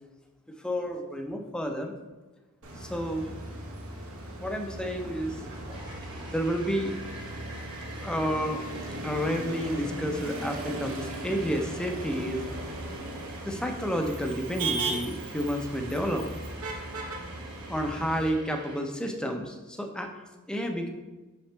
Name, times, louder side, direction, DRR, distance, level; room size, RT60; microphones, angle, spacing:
voice 1, 0.6-1.9 2.8-3.3 4.4-5.5 6.3-6.9 8.0-8.6 9.0-12.4 13.5-16.3 17.7-20.1 20.5-20.9, equal, 5° left, 3 dB, 0.6 m, -30 dB
Motor vehicle (road), 2.6-18.3, right 2 dB, 65° right, 1.2 m, -37 dB
sound 1, 5.0-18.8, right 2 dB, 20° right, 1.0 m, -48 dB
6.3 x 5.7 x 3.4 m, 1.2 s
head